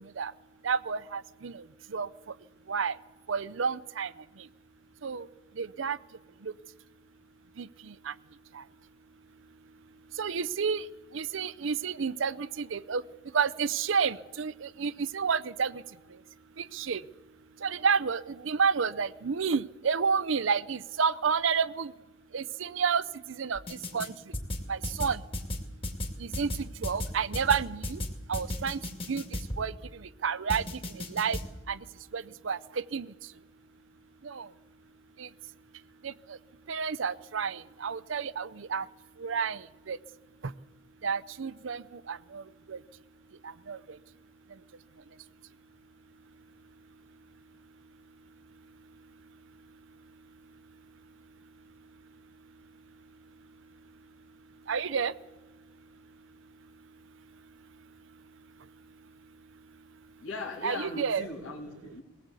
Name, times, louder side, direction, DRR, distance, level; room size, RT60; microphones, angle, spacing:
voice 1, 0.6-1.6 1.9-2.1 2.7-2.9 3.3-4.1 5.0-5.3 5.6-6.0 6.4-6.5 7.6-8.1 8.6-8.7 10.2-10.8 11.1-13.0 13.3-15.8 16.7-17.0 17.6-21.9 22.3-23.0 23.3-23.6 23.9-24.1 24.7-25.2 26.2-28.0 28.3-28.8 29.1-29.2 29.6-29.7 30.2-30.6 31.1-31.4 31.7-31.8 32.1-33.1 34.2-34.5 35.2-35.3 36.0-36.1 36.7-38.9 39.2-39.6 39.9-40.0 41.0-42.4 42.7-42.8 43.7-43.8 54.7-55.1 60.6-61.2, right 6 dB, 75° right, 15 dB, 0.6 m, -30 dB
sound 1, 23.5-24.1 24.3-29.6 30.5-31.4, left 1 dB, 30° left, 2.3 m, -34 dB
voice 2, 60.2-62.0, left 3 dB, 85° left, -3 dB, 2.7 m, -39 dB
20.5 x 18.0 x 8.2 m, 1.2 s
head